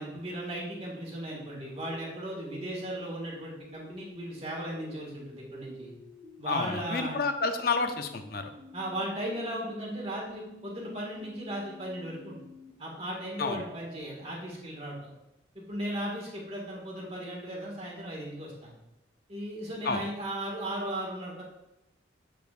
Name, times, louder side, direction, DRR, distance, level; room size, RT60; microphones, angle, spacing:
voice 1, 0.0-5.9 6.4-7.2 8.7-12.4 12.8-15.1 15.5-18.7 19.3-21.4, right 1 dB, 35° right, -2 dB, 1.9 m, -36 dB
sound 1, 1.7-7.1 7.7-12.7 13.7-14.0, left 1 dB, 65° right, 2.2 m, -50 dB
voice 2, 6.5-8.5 13.4-13.6 19.8-20.0, left 4 dB, 50° left, 7 dB, 0.6 m, -30 dB
8.0 x 6.8 x 2.5 m, 0.91 s
head